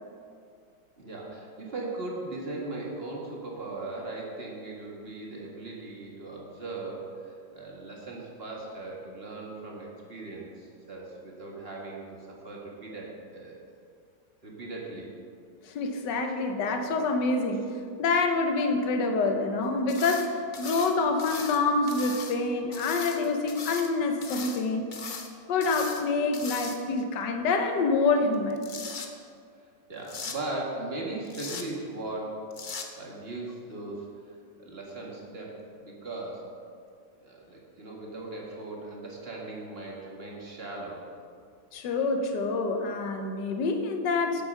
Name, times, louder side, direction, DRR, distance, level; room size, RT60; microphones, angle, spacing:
voice 1, 1.0-13.6 14.4-15.1 29.9-34.1 34.6-36.5 37.2-41.1, right 2 dB, 30° right, -2 dB, 1.8 m, -38 dB
voice 2, 15.6-17.7 18.0-25.1 25.5-28.6 41.7-44.4, left 3 dB, 65° left, 5 dB, 1.5 m, -27 dB
sound 1, 19.9-20.3 20.5-21.6 21.9-22.3 22.7-23.9 24.2-24.6 24.9-25.3 25.6-26.0 26.3-27.0 28.3-29.1 30.1-30.4 31.3-31.6 32.5-32.9, left 5 dB, 85° left, 0.4 m, -38 dB
9.1 x 7.3 x 6.5 m, 2.3 s
omnidirectional pair, 2.1 m